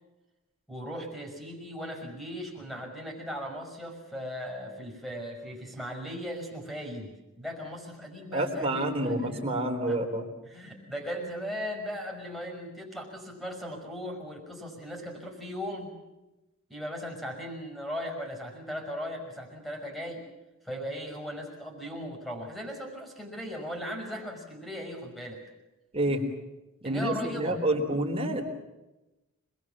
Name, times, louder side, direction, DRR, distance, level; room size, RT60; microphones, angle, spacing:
voice 1, 0.7-9.5 9.9-10.0 10.4-16.0 16.7-20.2 20.6-25.4 26.8-27.6, equal, ahead, 2 dB, 5.9 m, -38 dB
voice 2, 8.3-10.3 25.9-26.2 26.8-28.4, right 1 dB, 25° right, 2 dB, 3.7 m, -28 dB
26.5 x 21.5 x 7.4 m, 1.0 s
head